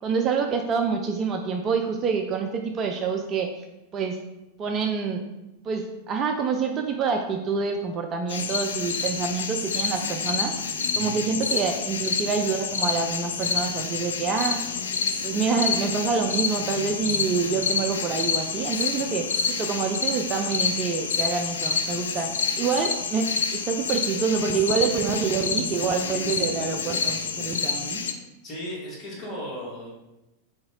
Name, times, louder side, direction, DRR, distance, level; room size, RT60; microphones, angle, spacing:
voice 1, 0.0-3.5 3.9-4.2 4.6-5.2 5.6-10.5 11.0-14.6 15.2-28.1, right 5 dB, 30° right, 4 dB, 0.3 m, -27 dB
sound 1, 8.3-28.1, left 5 dB, 65° left, 0.3 m, -28 dB
voice 2, 28.4-30.0, equal, 25° left, -4 dB, 1.5 m, -36 dB
3.9 x 2.9 x 3.7 m, 0.97 s
figure-of-eight pair, 90°, 0 cm